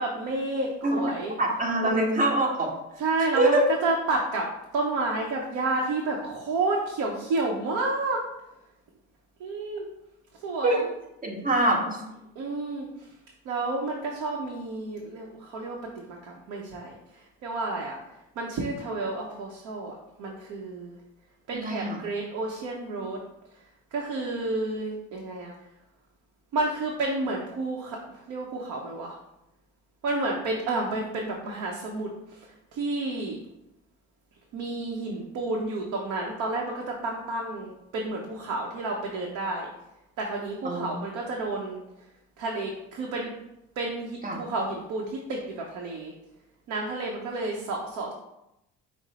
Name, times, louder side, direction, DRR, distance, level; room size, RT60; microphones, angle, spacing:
voice 1, 0.0-1.4 1.8-2.0 3.0-4.5 4.7-8.2 9.4-9.9 10.4-10.9 12.4-12.9 13.4-15.8 16.1-16.9 17.4-18.0 18.4-21.0 21.5-23.2 23.9-25.5 26.5-29.2 30.0-33.4 34.5-39.7 40.2-41.8 42.4-43.3 43.8-46.1 46.7-48.1, right 2 dB, 75° right, -1 dB, 0.8 m, -30 dB
voice 2, 1.4-2.7 3.3-3.6 10.6-10.8 11.2-12.0 21.5-22.0 40.6-41.0 44.2-44.4, right 2 dB, 30° right, -1 dB, 1.3 m, -24 dB
6.0 x 2.1 x 4.1 m, 0.87 s
supercardioid pair, 90°, 30 cm